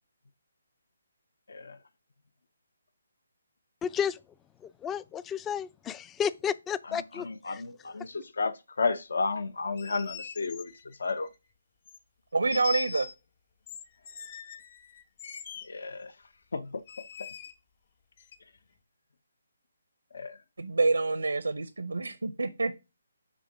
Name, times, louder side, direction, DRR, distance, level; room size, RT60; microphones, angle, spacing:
voice 1, 3.8-4.2 4.6-7.6, left 8 dB, 15° left, 0.3 m, -32 dB
voice 2, 6.8-11.3 15.6-16.1 16.5-16.8 20.1-20.4, left 4 dB, 65° left, 0.6 m, -33 dB
sound 1, 9.6-11.4 11.9-12.0 12.5-13.2 13.7-15.7 16.9-17.5 18.2-18.4, left 7 dB, 45° left, 1.0 m, -42 dB
voice 3, 12.3-13.1 20.6-22.7, right 3 dB, 80° right, 0.6 m, -27 dB
6.2 x 3.7 x 5.8 m
figure-of-eight pair, 145°, 0 cm